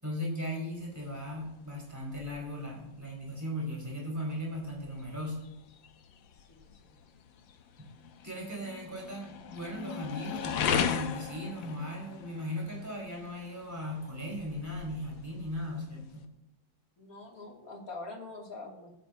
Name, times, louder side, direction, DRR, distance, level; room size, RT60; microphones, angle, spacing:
voice 1, 0.0-5.4 7.8-7.9 8.2-16.2, left 1 dB, 10° right, -3 dB, 4.6 m, -37 dB
sound 1, 0.7-16.3, left 7 dB, 80° left, 1.7 m, -39 dB
voice 2, 6.5-7.0 17.0-18.9, left 3 dB, 45° left, -1 dB, 3.1 m, -44 dB
17.5 x 9.2 x 2.8 m, 0.92 s
omnidirectional pair, 2.1 m